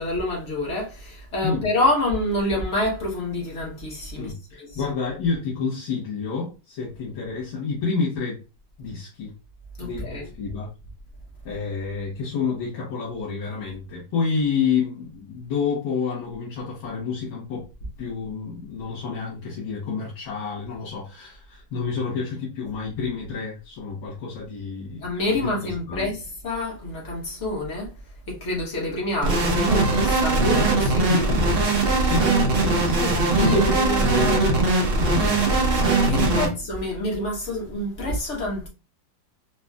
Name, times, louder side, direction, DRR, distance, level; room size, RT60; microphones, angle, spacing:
voice 1, 0.0-4.3 4.6-4.8 9.8-10.3 25.0-27.9 28.3-31.3 32.8-33.7 36.0-38.7, left 1 dB, 45° left, 1.2 m, -27 dB
voice 2, 4.2-8.4 8.8-9.3 9.8-10.7 11.5-17.6 18.0-25.0 25.3-26.1 30.4-30.7 31.1-31.6 32.0-33.1 33.4-34.6 35.0-35.5 36.1-36.5, left 5 dB, 80° left, 1.9 m, -29 dB
sound 1, 29.2-36.5, right 3 dB, 55° right, 0.6 m, -20 dB
4.1 x 2.9 x 2.3 m
omnidirectional pair, 2.1 m